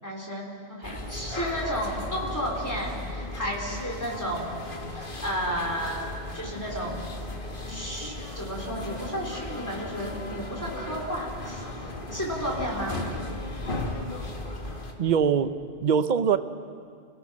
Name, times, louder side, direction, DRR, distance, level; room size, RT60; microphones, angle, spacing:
voice 1, 0.0-6.0 6.3-7.3 7.7-13.0, equal, 15° left, -2 dB, 3.8 m, -33 dB
sound 1, 0.8-14.9, left 2 dB, 50° left, 2.0 m, -36 dB
voice 2, 15.0-16.4, right 7 dB, 50° right, 11 dB, 0.8 m, -23 dB
30.0 x 17.0 x 6.3 m, 2.2 s
omnidirectional pair, 1.1 m